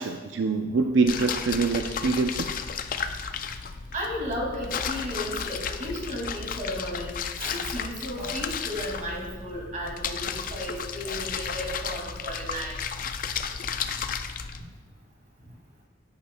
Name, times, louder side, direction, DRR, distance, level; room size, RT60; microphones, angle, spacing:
voice 1, 0.0-2.5, right 4 dB, 85° right, 5 dB, 0.4 m, -25 dB
sound 1, 1.1-14.6, left 6 dB, 50° left, 0.4 m, -33 dB
voice 2, 3.9-12.8, equal, 45° right, -2 dB, 2.2 m, -34 dB
10.5 x 8.6 x 2.2 m, 1.3 s
head